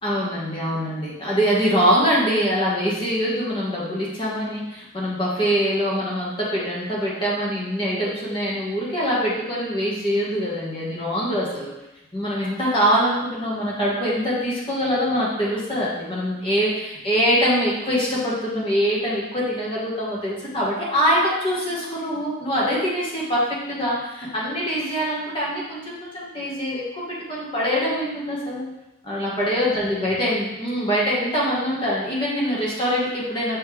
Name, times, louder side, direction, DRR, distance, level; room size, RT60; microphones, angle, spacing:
voice 1, 0.0-11.7 12.1-28.6 29.0-33.6, equal, 25° left, -7 dB, 1.7 m, -24 dB
6.7 x 4.5 x 3.4 m, 0.93 s
head